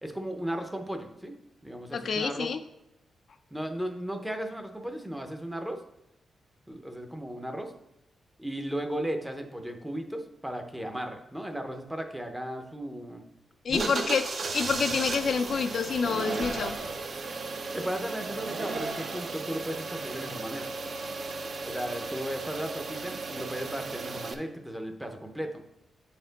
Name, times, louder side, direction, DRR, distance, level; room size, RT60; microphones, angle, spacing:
voice 1, 0.0-1.3 1.6-2.6 3.5-5.8 6.7-7.7 8.4-13.2 13.7-14.1 17.7-20.7 21.6-25.6, right 1 dB, 5° right, 5 dB, 0.6 m, -35 dB
voice 2, 1.9-2.6 13.6-14.2 14.5-16.7, left 5 dB, 50° left, 8 dB, 0.3 m, -28 dB
sound 1, 13.7-24.3, right 3 dB, 45° right, 0.6 m, -35 dB
8.1 x 4.2 x 3.9 m, 0.86 s
wide cardioid pair, 165°, 0 cm